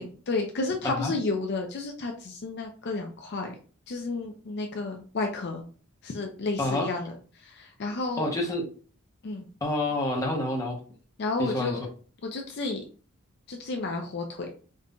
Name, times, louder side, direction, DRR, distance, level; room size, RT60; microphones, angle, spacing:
voice 1, 0.0-3.6 3.9-5.6 6.0-8.3 9.2-9.5 11.2-11.8 12.2-12.8 13.5-14.5, left 3 dB, 50° left, 2 dB, 0.5 m, -32 dB
voice 2, 6.6-6.9 8.2-8.6 9.6-10.8 11.4-11.7, left 1 dB, 15° left, -1 dB, 0.8 m, -28 dB
5.2 x 2.5 x 2.2 m, 0.40 s
head